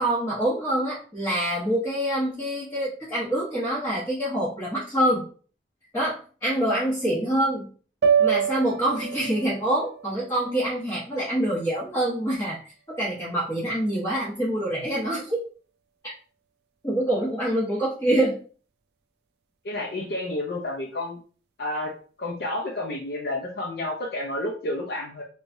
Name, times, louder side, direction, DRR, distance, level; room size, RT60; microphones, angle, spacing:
voice 1, 0.0-5.2 5.9-7.7 8.2-12.6 12.9-15.4 16.8-18.4, right 1 dB, 20° left, -8 dB, 1.0 m, -25 dB
sound 1, 8.0-12.3, right 7 dB, 65° right, 0.3 m, -28 dB
voice 2, 19.6-21.2 21.6-21.9 22.2-25.2, left 1 dB, 60° left, -1 dB, 0.6 m, -30 dB
3.4 x 3.1 x 2.6 m, 0.41 s
head